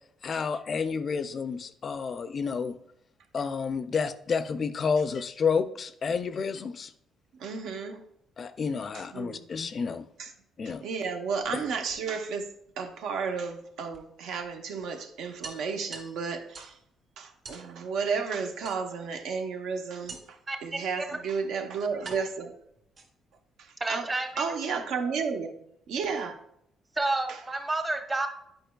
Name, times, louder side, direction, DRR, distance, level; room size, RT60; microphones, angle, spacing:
voice 1, 0.2-2.8 3.3-6.9 8.4-10.1 10.6-10.8 11.5-11.6, left 5 dB, 40° left, 12 dB, 0.4 m, -30 dB
voice 2, 7.4-8.0 8.9-9.4 10.2-10.3 10.6-12.5 12.8-16.8 17.2-22.5 23.6-24.1 24.4-25.6 25.9-26.4 27.3-27.4, right 5 dB, 80° right, 5 dB, 0.8 m, -33 dB
sound 1, 11.3-12.4 13.9-14.0 14.4-14.5 14.8-14.9 15.4-16.8 17.4-17.7 18.6-19.2 20.1-20.5 21.3-21.4 22.0-23.4, right 3 dB, 40° right, 2.1 m, -45 dB
voice 3, 20.5-21.2 23.8-24.5 26.9-28.3, right 2 dB, 20° right, 6 dB, 0.8 m, -30 dB
8.9 x 5.2 x 2.2 m, 0.74 s
cardioid pair, 120°, 0 cm